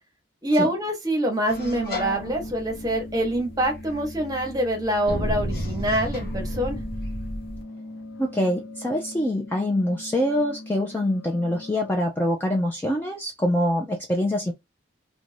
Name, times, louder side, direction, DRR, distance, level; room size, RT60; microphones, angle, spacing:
voice 1, 0.4-6.8, right 1 dB, 20° right, 0.9 m, -25 dB
sound 1, 1.5-7.6, equal, 50° left, 0.9 m, -33 dB
sound 2, 2.0-12.0, left 2 dB, 80° left, 0.7 m, -41 dB
voice 2, 8.2-14.5, left 1 dB, 10° left, 0.4 m, -25 dB
2.5 x 2.2 x 3.1 m
head